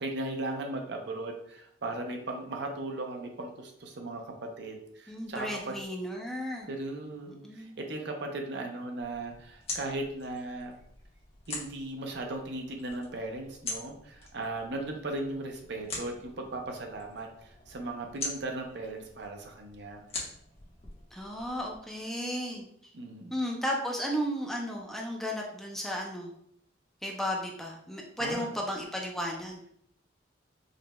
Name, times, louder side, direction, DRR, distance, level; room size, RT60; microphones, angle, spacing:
voice 1, 0.0-5.7 6.7-10.7 11.5-20.0 22.9-23.3 28.2-28.5, right 2 dB, 60° right, 3 dB, 0.6 m, -37 dB
voice 2, 5.1-6.7 7.3-7.8 21.1-22.6 23.3-26.3 27.0-29.6, equal, ahead, -1 dB, 0.5 m, -34 dB
sound 1, 9.0-21.8, left 3 dB, 30° left, 1.0 m, -44 dB
4.9 x 3.2 x 2.3 m, 0.69 s
head